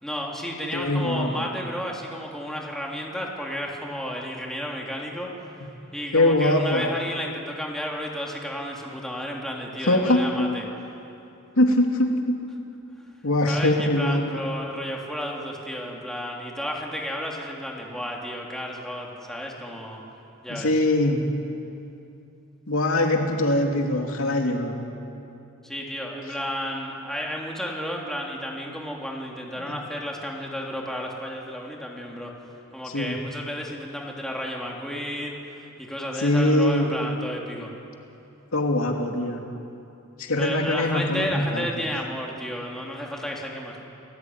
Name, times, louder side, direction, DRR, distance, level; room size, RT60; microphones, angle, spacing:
voice 1, 0.0-5.3 5.9-10.6 13.5-20.0 20.4-20.7 25.6-32.3 32.7-35.3 35.8-37.7 40.4-43.8, equal, ahead, -2 dB, 3.4 m, -32 dB
voice 2, 0.7-1.5 6.1-6.9 9.8-10.5 11.6-12.4 13.2-14.4 20.5-21.3 22.7-24.8 29.6-29.8 32.9-33.2 36.2-37.0 38.5-39.4 40.2-41.9, left 1 dB, 70° left, 2 dB, 2.8 m, -22 dB
29.5 x 19.0 x 9.6 m, 2.8 s
head